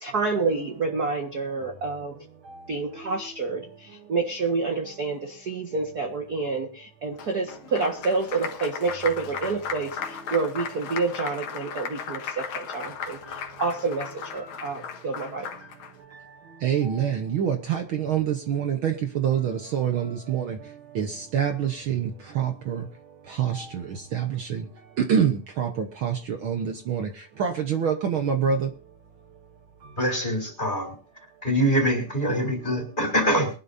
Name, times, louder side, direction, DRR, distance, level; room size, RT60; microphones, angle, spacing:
voice 1, 0.0-2.1 2.7-15.5, right 4 dB, 40° right, 3 dB, 1.5 m, -28 dB
Applause, 7.2-15.9, left 7 dB, 65° left, 2.7 m, -36 dB
voice 2, 16.6-20.6 20.9-22.9 23.3-24.7 25.0-27.1 27.4-28.7, right 8 dB, 80° right, 5 dB, 1.1 m, -26 dB
voice 3, 30.0-30.9 31.4-33.5, equal, 15° left, 2 dB, 3.5 m, -24 dB
23.0 x 12.0 x 2.7 m, 0.35 s
omnidirectional pair, 3.9 m